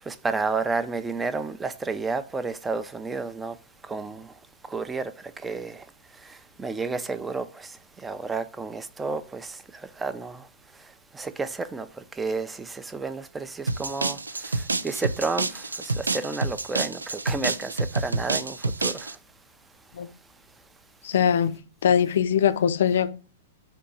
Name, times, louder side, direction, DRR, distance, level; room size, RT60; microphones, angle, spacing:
voice 1, 0.0-3.6 3.8-19.2 20.0-20.1, right 4 dB, 10° right, 0.4 m, -32 dB
sound 1, 13.7-19.1, right 3 dB, 85° right, 0.3 m, -28 dB
voice 2, 21.0-23.1, left 8 dB, 65° left, 0.4 m, -22 dB
4.5 x 2.9 x 3.8 m
figure-of-eight pair, 105°, 0 cm